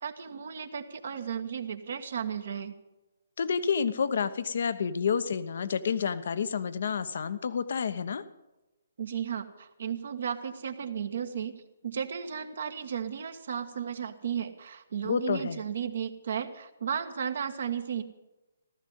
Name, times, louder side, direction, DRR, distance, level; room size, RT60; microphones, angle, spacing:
voice 1, 0.0-2.7 9.0-11.5 11.8-18.0, right 8 dB, 60° right, 8 dB, 1.4 m, -34 dB
voice 2, 3.4-8.2 15.0-15.6, left 6 dB, 60° left, 13 dB, 1.0 m, -29 dB
15.0 x 13.5 x 5.5 m, 1.0 s
figure-of-eight pair, 135°, 0 cm